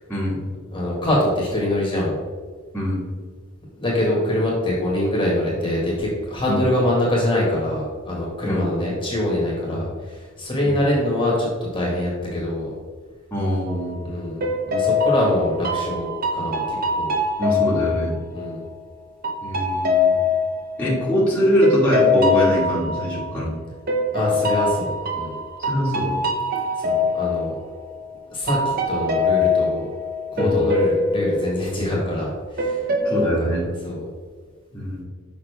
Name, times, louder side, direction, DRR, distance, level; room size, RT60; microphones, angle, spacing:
voice 1, 0.1-0.5 2.7-3.1 6.5-6.6 8.4-8.7 9.7-9.8 10.6-10.8 13.3-14.1 17.4-18.1 19.4-20.1 20.8-23.5 25.6-26.1 30.4-30.6 33.0-33.7 34.7-35.0, equal, 10° left, -8 dB, 1.7 m, -23 dB
voice 2, 0.7-2.2 3.8-12.7 14.0-17.1 18.3-18.6 24.1-25.4 26.8-27.5 28.3-29.9 30.3-32.9 33.2-33.5 33.8-34.0, left 1 dB, 25° left, -4 dB, 1.7 m, -24 dB
sound 1, 13.7-14.0 14.4-18.7 19.2-23.5 23.9-28.1 28.5-32.2 32.6-33.3, left 3 dB, 45° right, 0.9 m, -23 dB
6.2 x 5.7 x 3.4 m, 1.5 s
head